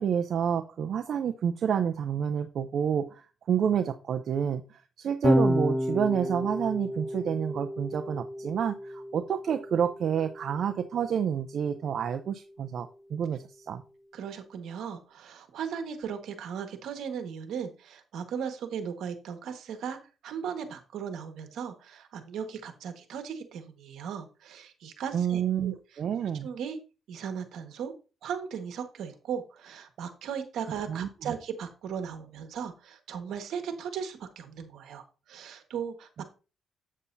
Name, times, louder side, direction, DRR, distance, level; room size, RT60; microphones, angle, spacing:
voice 1, 0.0-13.8 25.1-26.5 30.9-31.3, right 8 dB, 60° right, 6 dB, 0.6 m, -29 dB
Electric guitar / Bass guitar, 5.2-11.6, equal, 15° left, 1.2 m, -31 dB
voice 2, 14.1-20.0 20.2-25.7 26.4-26.8 27.1-27.9 28.2-36.2, right 7 dB, 80° right, 6 dB, 1.5 m, -37 dB
8.4 x 7.5 x 2.7 m, 0.33 s
cardioid pair, 90°, 0 cm